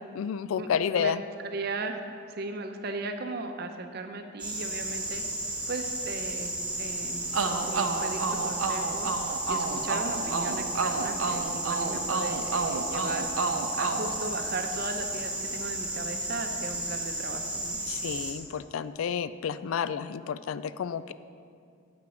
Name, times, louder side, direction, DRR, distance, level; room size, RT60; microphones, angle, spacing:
voice 1, 0.1-1.2 17.9-21.1, left 7 dB, 75° left, 14 dB, 0.3 m, -30 dB
voice 2, 1.5-2.0 2.3-5.2 5.7-7.2 7.6-9.1 9.5-13.3 13.7-17.8, right 3 dB, 50° right, 6 dB, 0.7 m, -37 dB
sound 1, 4.4-18.3, right 1 dB, 5° right, 1.4 m, -34 dB
sound 2, 7.3-14.9, right 4 dB, 85° right, 0.7 m, -31 dB
9.3 x 5.2 x 7.2 m, 2.3 s
head